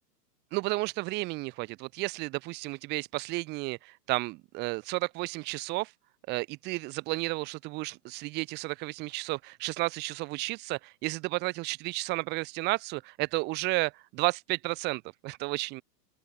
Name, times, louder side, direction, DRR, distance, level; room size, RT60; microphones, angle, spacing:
voice 1, 0.5-5.9 6.3-15.8, right 23 dB, 20° right, 0.7 m, -32 dB
open air
hypercardioid pair, 125°, 49 cm